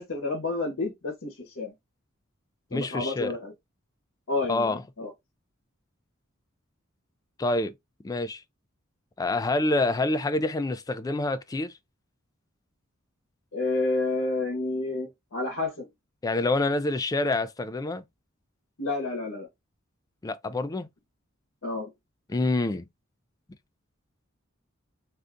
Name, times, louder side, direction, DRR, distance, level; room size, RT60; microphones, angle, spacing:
voice 1, 0.0-1.7 2.7-3.5 4.3-5.1 13.5-15.9 18.8-19.5 21.6-21.9, left 3 dB, 75° left, 0.9 m, -30 dB
voice 2, 2.7-3.3 4.5-4.8 7.4-7.7 8.0-8.4 9.2-11.7 16.2-18.0 20.2-20.9 22.3-22.8, left 2 dB, 20° left, 0.3 m, -27 dB
2.6 x 2.3 x 3.5 m
head